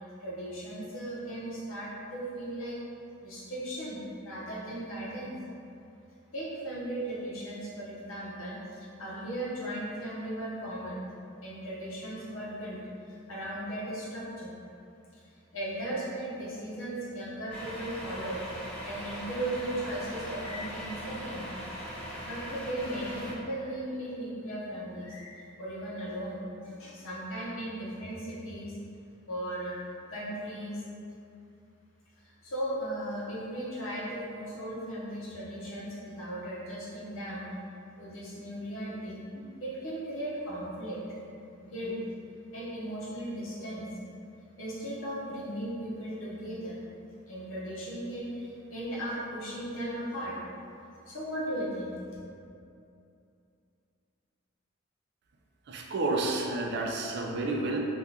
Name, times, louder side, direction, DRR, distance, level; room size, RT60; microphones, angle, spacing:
voice 1, 0.2-2.8 3.2-5.3 6.3-11.0 11.4-12.8 13.1-14.5 15.5-18.4 18.8-21.5 22.2-28.7 29.3-29.8 30.1-30.8 32.2-37.4 38.0-41.0 41.6-41.9 42.5-43.9 44.6-46.8 47.3-50.4 51.1-51.9, right 1 dB, 75° left, -6 dB, 0.8 m, -37 dB
Truck, 17.5-23.3, equal, 5° left, 0.6 m, -40 dB
voice 2, 55.7-57.8, right 2 dB, 55° right, 0 dB, 0.4 m, -30 dB
3.5 x 2.4 x 2.7 m, 2.6 s
head